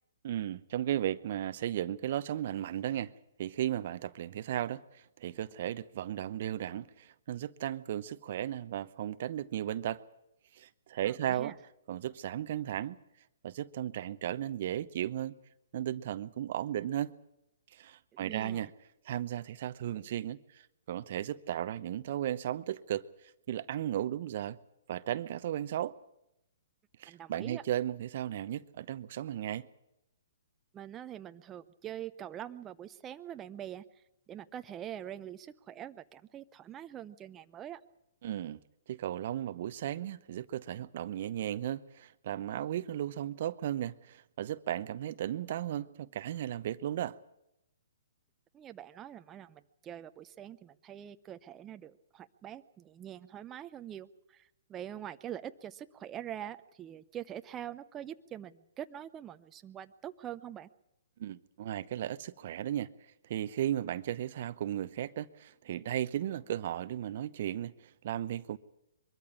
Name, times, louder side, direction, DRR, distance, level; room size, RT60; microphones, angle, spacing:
voice 1, 0.2-3.1 3.4-10.0 10.5-11.6 11.9-13.0 13.4-15.4 15.7-17.1 17.7-18.7 19.0-23.1 23.5-24.6 24.9-26.0 27.0-29.7 38.2-38.6 38.9-47.2 61.2-62.9 63.2-68.6, right 11 dB, 55° right, 0.8 m, -35 dB
voice 2, 11.0-11.5 18.1-18.6 27.1-27.6 30.7-33.8 34.3-37.8 48.5-60.7, right 10 dB, 20° right, 0.8 m, -44 dB
23.0 x 13.5 x 9.9 m
hypercardioid pair, 130°, 0 cm